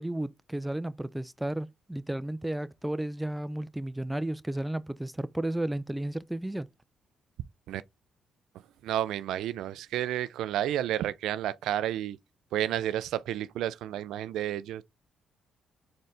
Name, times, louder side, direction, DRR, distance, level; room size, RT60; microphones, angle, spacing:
voice 1, 0.0-6.7, right 1 dB, 5° right, 0.4 m, -33 dB
voice 2, 8.5-12.2 12.5-14.8, right 12 dB, 85° right, 0.3 m, -31 dB
4.3 x 3.7 x 3.3 m
cardioid pair, 90°, 0 cm